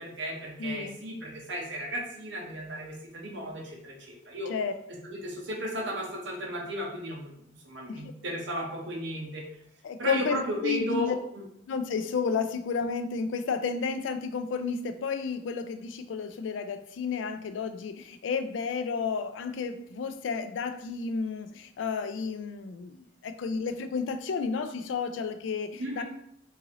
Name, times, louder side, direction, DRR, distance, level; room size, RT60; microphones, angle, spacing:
voice 1, 0.0-4.5 4.9-9.4 10.0-11.4 25.8-26.0, equal, 70° right, -1 dB, 0.9 m, -35 dB
voice 2, 0.6-0.9 4.5-4.7 7.9-8.0 9.8-11.2 11.7-26.0, left 5 dB, 75° left, 10 dB, 0.3 m, -32 dB
3.8 x 2.6 x 2.9 m, 0.73 s
head